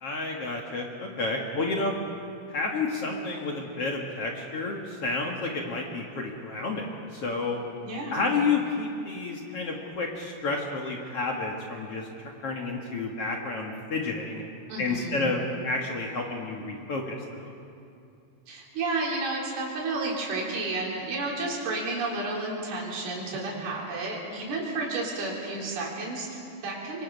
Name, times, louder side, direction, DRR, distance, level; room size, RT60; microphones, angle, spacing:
voice 1, 0.0-2.0 2.5-7.6 8.1-14.4 14.8-17.5, left 3 dB, 50° left, 0 dB, 2.0 m, -30 dB
voice 2, 7.8-8.3 14.7-15.2 18.5-27.0, right 2 dB, 80° right, -3 dB, 5.5 m, -31 dB
25.5 x 24.0 x 5.3 m, 2.5 s
omnidirectional pair, 4.4 m